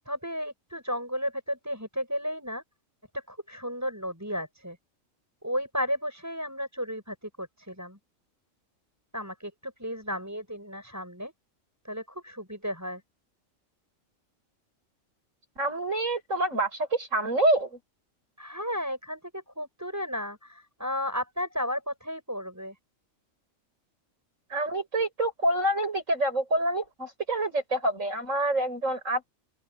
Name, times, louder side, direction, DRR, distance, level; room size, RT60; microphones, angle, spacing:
voice 1, 0.0-2.6 3.1-4.8 5.4-8.0 9.1-11.3 11.8-13.0 18.4-22.7, equal, 10° right, 7.3 m, -34 dB
voice 2, 15.6-17.8 24.5-29.3, right 1 dB, 75° right, 7.6 m, -27 dB
open air
omnidirectional pair, 1.4 m